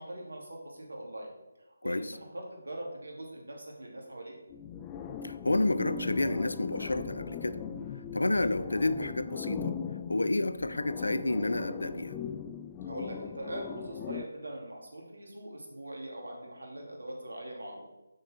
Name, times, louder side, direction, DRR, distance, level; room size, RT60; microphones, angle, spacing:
voice 1, 0.0-1.3 1.6-4.3 12.8-17.8, right 1 dB, 70° right, -1 dB, 2.5 m, -42 dB
sound 1, 4.5-14.3, left 7 dB, 15° left, 0.3 m, -39 dB
voice 2, 5.2-7.6 8.1-9.7 10.1-12.2, left 2 dB, 75° left, 12 dB, 0.5 m, -30 dB
6.5 x 6.4 x 4.4 m, 1.0 s
figure-of-eight pair, 155°, 0 cm